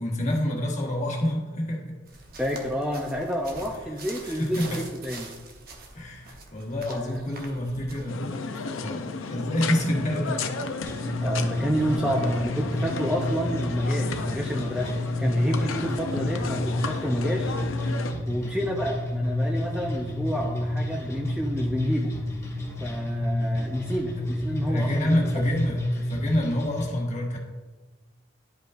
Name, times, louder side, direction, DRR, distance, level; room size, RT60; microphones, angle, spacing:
voice 1, 0.0-2.0 4.2-4.8 5.9-10.5 24.7-27.4, left 1 dB, 35° left, -2 dB, 1.3 m, -28 dB
sound 1, 2.1-8.1, right 3 dB, 50° right, 0.9 m, -44 dB
voice 2, 2.4-5.3 6.9-7.2 11.2-14.9 15.2-17.6 18.3-22.1 22.8-25.4, equal, 5° right, 0 dB, 0.4 m, -29 dB
sound 2, 8.1-18.1, left 4 dB, 85° left, 0.6 m, -33 dB
sound 3, 10.8-26.8, left 1 dB, 15° left, 1.4 m, -30 dB
10.5 x 5.3 x 2.5 m, 1.3 s
head